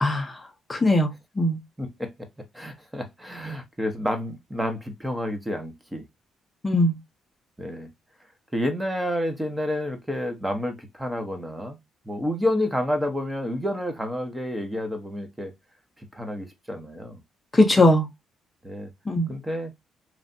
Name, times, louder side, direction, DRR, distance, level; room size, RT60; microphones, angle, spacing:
voice 1, 0.0-0.4 0.7-1.6 6.6-7.0 17.5-18.1 19.1-19.3, left 1 dB, 20° left, 0.7 m, -20 dB
voice 2, 1.8-2.1 2.5-6.0 7.6-7.9 8.5-11.8 12.1-15.5 16.1-17.2 18.6-18.9 19.3-19.7, left 1 dB, 10° right, 0.8 m, -29 dB
3.2 x 2.4 x 2.6 m
cardioid pair, 90°, 0 cm